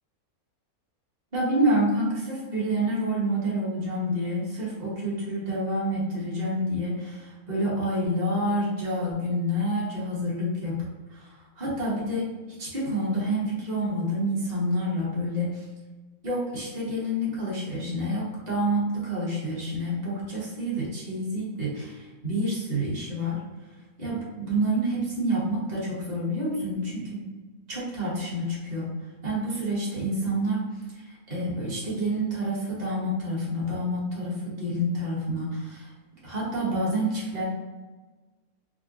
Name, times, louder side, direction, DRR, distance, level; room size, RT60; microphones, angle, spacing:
voice 1, 1.3-10.8 11.1-12.3 12.6-15.6 16.2-23.4 24.0-27.3 27.7-28.9 29.2-30.6 31.3-35.9 36.2-37.4, right 1 dB, 30° right, -5 dB, 1.1 m, -28 dB
3.8 x 2.1 x 3.7 m, 1.3 s
omnidirectional pair, 1.5 m